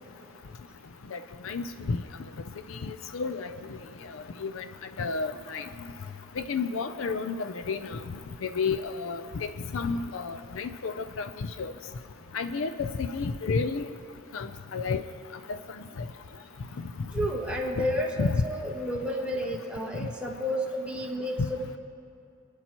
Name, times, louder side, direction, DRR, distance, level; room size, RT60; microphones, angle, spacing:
voice 1, 2.8-3.5 4.4-4.6 5.0-5.6 6.4-8.0 8.4-9.5 9.7-11.3 11.6-11.7 12.3-13.9 14.3-15.0 17.8-17.9 18.2-18.4, left 4 dB, 70° left, 10 dB, 0.5 m, -30 dB
voice 2, 17.1-21.8, equal, 5° right, -2 dB, 1.3 m, -31 dB
26.5 x 9.8 x 3.0 m, 2.7 s
head